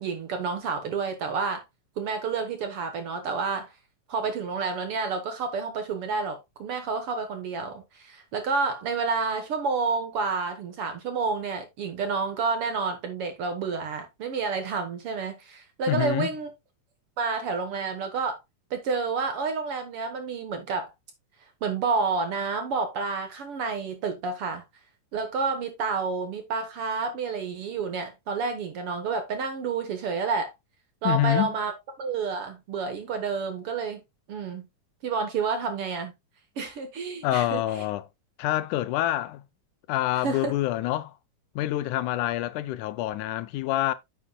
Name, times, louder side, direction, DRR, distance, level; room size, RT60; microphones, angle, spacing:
voice 1, 0.0-1.6 2.0-3.7 4.1-16.5 17.2-18.4 18.7-20.9 21.6-24.6 25.1-30.5 31.0-31.7 32.0-34.0 34.3-34.7 35.0-36.1 36.6-37.8 40.2-40.5, right 4 dB, 60° right, 1.7 m, -29 dB
voice 2, 15.9-16.3 31.0-31.5 37.2-38.1 38.4-39.4 39.9-41.1 41.6-43.9, left 14 dB, 80° left, 2.0 m, -26 dB
9.7 x 7.2 x 2.2 m
omnidirectional pair, 3.6 m